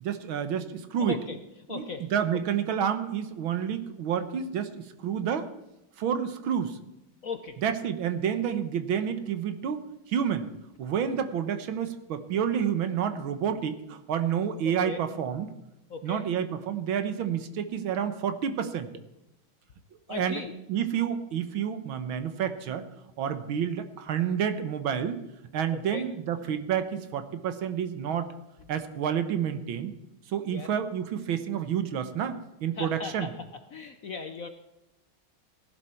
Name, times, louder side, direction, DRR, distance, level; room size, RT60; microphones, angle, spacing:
voice 1, 0.0-1.2 1.7-5.5 6.0-6.8 7.6-9.8 10.1-10.5 10.8-15.5 16.0-18.9 20.1-20.4 20.7-22.9 23.2-25.2 25.5-28.3 28.7-29.9 30.3-33.3, right 8 dB, 75° right, 9 dB, 1.9 m, -29 dB
voice 2, 1.0-1.4 1.7-2.1 7.2-7.6 14.6-15.0 15.9-16.2 20.1-20.5 25.7-26.1 30.5-30.7 32.8-33.3 33.7-34.5, left 4 dB, 55° left, 8 dB, 1.0 m, -37 dB
17.5 x 11.5 x 4.4 m, 0.94 s
omnidirectional pair, 2.3 m